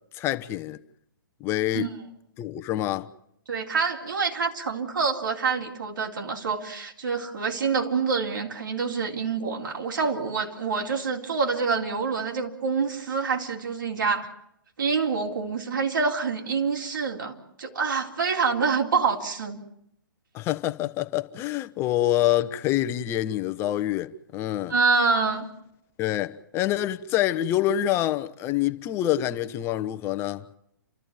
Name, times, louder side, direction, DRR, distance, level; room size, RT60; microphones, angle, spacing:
voice 1, 0.1-0.8 1.4-1.9 2.4-3.1 20.3-24.7 26.0-30.4, left 13 dB, 20° left, 0.9 m, -26 dB
voice 2, 3.5-14.3 14.8-19.6 24.7-25.5, right 5 dB, 65° right, 4.0 m, -26 dB
29.5 x 13.5 x 9.5 m
figure-of-eight pair, 125°, 11 cm